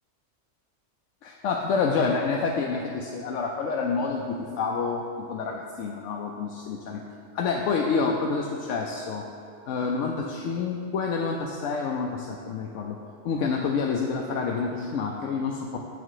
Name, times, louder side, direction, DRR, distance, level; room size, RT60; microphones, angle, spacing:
voice 1, 1.2-7.0 7.3-9.2 9.7-13.0 13.2-15.8, left 4 dB, 75° left, 0 dB, 0.9 m, -28 dB
8.3 x 4.9 x 4.7 m, 2.7 s
omnidirectional pair, 1.3 m